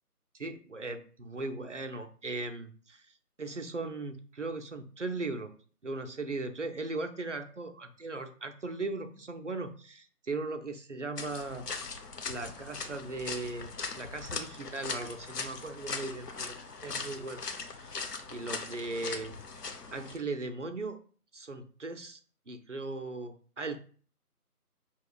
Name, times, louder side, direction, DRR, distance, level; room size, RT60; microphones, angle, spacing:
voice 1, 0.4-3.1 3.4-5.6 5.8-11.7 12.2-13.7 14.0-16.6 16.8-17.5 17.8-18.0 18.3-19.4 19.9-21.0 21.3-22.2 22.5-23.8, right 3 dB, 55° right, 7 dB, 0.5 m, -38 dB
sound 1, 11.2-20.2, left 4 dB, 85° left, 0.8 m, -40 dB
5.2 x 2.8 x 2.3 m, 0.42 s
figure-of-eight pair, 170°, 46 cm